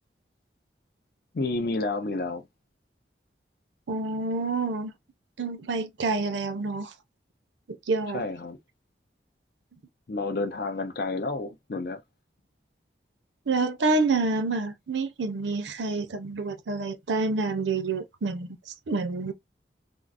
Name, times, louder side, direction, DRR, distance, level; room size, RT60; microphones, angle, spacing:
voice 1, 1.3-2.5 8.1-8.6 10.1-12.0, left 3 dB, 55° left, 0.5 m, -30 dB
voice 2, 3.9-4.9 5.4-6.9 7.9-8.2 13.5-19.3, right 3 dB, 85° right, 0.6 m, -28 dB
3.6 x 2.0 x 2.4 m
head